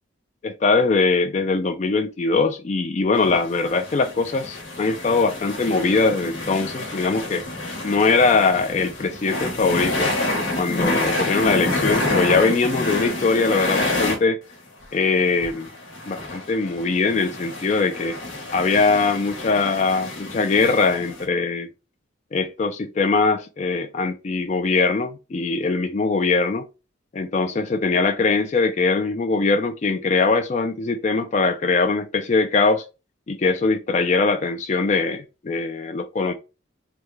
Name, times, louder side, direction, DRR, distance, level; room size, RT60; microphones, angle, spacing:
voice 1, 0.4-7.5 7.8-10.1 10.5-14.4 14.9-15.7 16.1-18.2 18.5-21.7 22.3-26.6 27.1-32.8 33.3-36.3, left 4 dB, 35° left, 0.3 m, -21 dB
sound 1, 3.2-14.2 14.5-14.6 14.8-14.9 15.3-21.2, left 2 dB, 80° left, 1.1 m, -28 dB
3.5 x 2.1 x 3.1 m
head